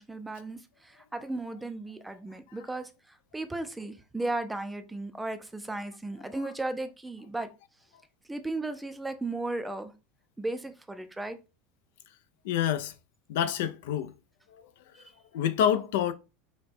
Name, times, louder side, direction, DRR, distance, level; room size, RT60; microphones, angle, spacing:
voice 1, 0.0-2.9 3.3-7.5 8.3-9.9 10.4-11.4 14.9-15.0, right 2 dB, 5° right, 0.4 m, -35 dB
voice 2, 12.4-12.9 13.3-14.1 15.3-16.1, left 9 dB, 75° left, 0.5 m, -27 dB
5.1 x 2.2 x 4.2 m
supercardioid pair, 165°, 0 cm